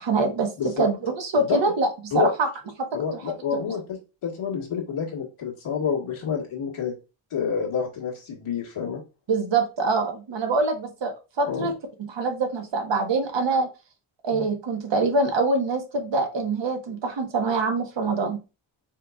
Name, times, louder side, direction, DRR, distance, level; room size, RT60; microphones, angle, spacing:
voice 1, 0.0-0.5 0.8-2.5 2.8-2.9 3.1-3.2 3.5-3.6 9.3-11.7 12.0-13.7 14.2-18.4, right 3 dB, 60° right, 4 dB, 1.3 m, -24 dB
voice 2, 2.9-6.9 7.3-9.0 11.5-11.7 14.3-14.4, left 7 dB, 80° left, -3 dB, 1.7 m, -28 dB
4.5 x 3.8 x 2.3 m, 0.29 s
cardioid pair, 95°, 49 cm